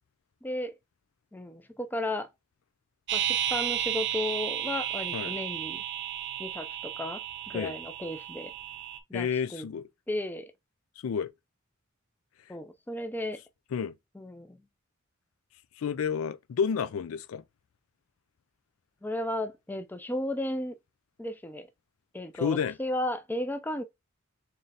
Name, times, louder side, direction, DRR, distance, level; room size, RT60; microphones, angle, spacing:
voice 1, 0.4-0.7 1.3-2.3 3.1-5.8 6.4-8.5 9.1-9.7 10.1-10.5 12.5-13.4 14.2-14.6 19.0-20.8 21.2-21.7 22.1-23.8, left 1 dB, 10° left, 0.4 m, -34 dB
sound 1, 3.1-9.0, right 10 dB, 55° right, 0.6 m, -33 dB
voice 2, 9.1-9.9 11.0-11.3 13.7-13.9 15.8-17.4 22.3-22.8, left 7 dB, 80° left, 0.4 m, -30 dB
3.2 x 2.7 x 3.9 m
head